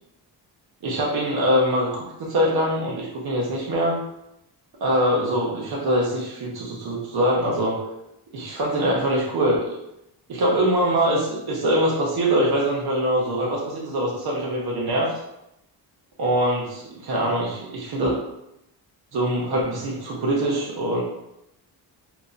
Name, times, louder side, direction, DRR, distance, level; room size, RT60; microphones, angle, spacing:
voice 1, 0.8-4.0 4.8-7.8 8.3-9.7 10.3-15.1 16.2-18.1 19.1-21.0, equal, 60° right, -4 dB, 0.9 m, -23 dB
2.9 x 2.6 x 3.8 m, 0.84 s
cardioid pair, 145°, 43 cm